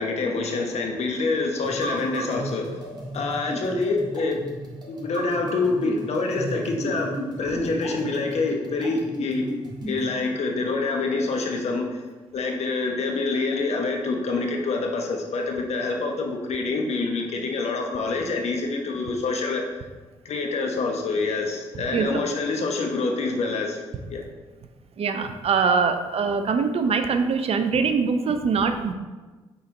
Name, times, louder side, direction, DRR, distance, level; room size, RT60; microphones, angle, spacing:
voice 1, 0.0-2.8 3.1-4.4 4.9-9.5 9.9-12.0 12.3-19.6 20.2-23.8 24.1-24.2, left 3 dB, 60° left, 2 dB, 1.0 m, -26 dB
sound 1, 1.6-10.1, right 1 dB, 35° right, 1.8 m, -35 dB
voice 2, 25.0-28.9, right 5 dB, 55° right, 8 dB, 0.6 m, -23 dB
5.5 x 4.3 x 4.1 m, 1.3 s
hypercardioid pair, 45°, 13 cm